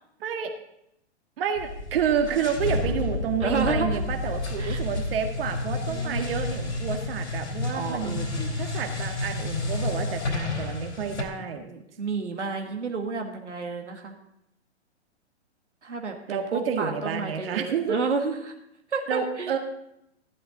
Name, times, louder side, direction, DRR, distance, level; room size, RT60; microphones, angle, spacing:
voice 1, 0.2-0.5 1.4-8.2 8.6-11.7 16.3-18.0 19.1-19.6, right 7 dB, 55° right, 5 dB, 1.6 m, -29 dB
sound 1, 1.6-11.2, left 2 dB, 85° left, 3.5 m, -30 dB
voice 2, 3.4-4.0 4.6-4.8 5.9-6.4 7.7-8.6 11.6-14.1 15.8-18.5 18.9-19.5, right 4 dB, 85° right, 3 dB, 1.6 m, -31 dB
14.5 x 11.5 x 3.9 m, 0.79 s
figure-of-eight pair, 120°, 35 cm